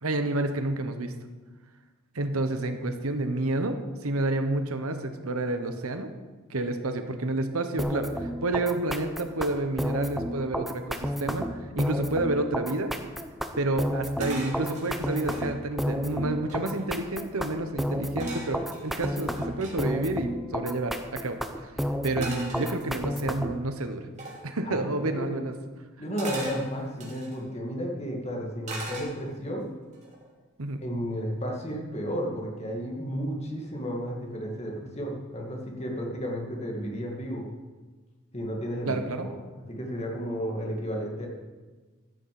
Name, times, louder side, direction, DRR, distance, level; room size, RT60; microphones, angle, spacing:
voice 1, 0.0-1.1 2.1-6.1 6.5-11.5 11.7-12.9 13.6-21.7 22.0-24.1 24.4-25.6 30.6-30.9 38.8-39.3, right 2 dB, 80° right, 7 dB, 1.1 m, -29 dB
sound 1, 7.8-23.6, equal, ahead, 0.7 m, -31 dB
sound 2, 14.2-15.5 16.1-16.2 16.4-17.0 18.2-19.8 22.2-23.3 24.2-24.5 26.2-27.4 28.6-29.5 29.9-30.3, right 2 dB, 30° right, 3.0 m, -40 dB
voice 2, 24.6-25.4 26.0-29.7 30.8-37.5 38.3-38.9 39.2-39.3 39.7-41.3, equal, 30° left, 0 dB, 2.2 m, -33 dB
13.5 x 6.8 x 7.7 m, 1.3 s
head